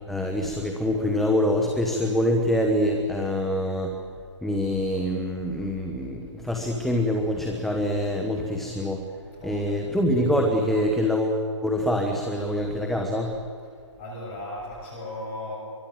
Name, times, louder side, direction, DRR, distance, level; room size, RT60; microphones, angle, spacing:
voice 1, 0.1-4.0 4.4-9.0 9.4-13.3, left 1 dB, ahead, 2 dB, 1.3 m, -25 dB
voice 2, 9.4-9.8 14.0-15.6, left 1 dB, 25° left, -3 dB, 7.3 m, -36 dB
24.0 x 23.5 x 7.7 m, 2.3 s
figure-of-eight pair, 145°, 16 cm